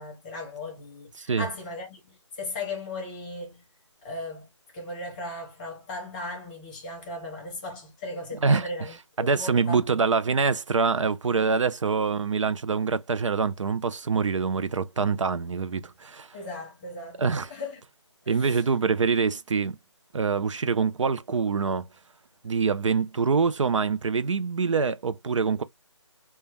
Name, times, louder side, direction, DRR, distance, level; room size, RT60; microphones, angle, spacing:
voice 1, 0.0-3.7 4.0-4.5 4.7-10.0 16.3-17.8 18.2-18.6, left 2 dB, 15° left, 0.8 m, -37 dB
voice 2, 9.2-16.3 17.2-17.5 18.3-19.8 20.1-21.9 22.4-25.6, right 5 dB, 75° right, 0.5 m, -25 dB
2.2 x 2.1 x 3.2 m
figure-of-eight pair, 160°, 16 cm